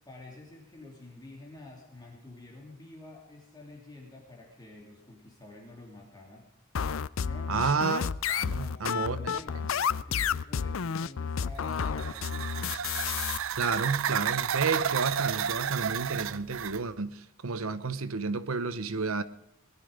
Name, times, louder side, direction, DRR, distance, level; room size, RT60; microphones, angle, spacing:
voice 1, 0.0-6.5 7.2-7.7 8.5-12.8, left 2 dB, 20° left, 2.8 m, -49 dB
sound 1, 6.7-13.4, left 7 dB, 70° left, 0.5 m, -31 dB
voice 2, 7.5-9.4 13.6-19.2, right 4 dB, 90° right, 0.9 m, -31 dB
sound 2, 11.6-16.8, right 8 dB, 70° right, 0.5 m, -32 dB
20.0 x 12.5 x 5.1 m
head